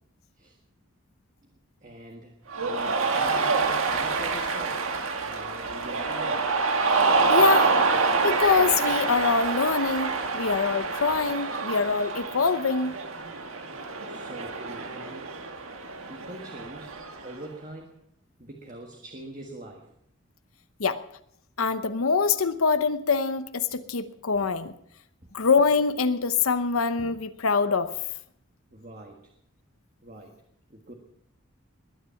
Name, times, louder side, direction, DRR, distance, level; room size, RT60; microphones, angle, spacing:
voice 1, 1.8-6.5 14.1-15.3 16.0-16.9 17.2-18.0 18.4-19.9 28.7-29.2 30.0-30.4 30.7-30.9, right 1 dB, 35° right, 2 dB, 1.6 m, -44 dB
Cheering, 2.5-17.3, right 4 dB, 80° right, 1.8 m, -27 dB
voice 2, 7.3-7.7 8.2-12.9 20.8-21.0 21.6-24.7 25.3-27.9, left 5 dB, 85° left, 11 dB, 0.8 m, -24 dB
20.5 x 10.0 x 5.7 m, 0.70 s
head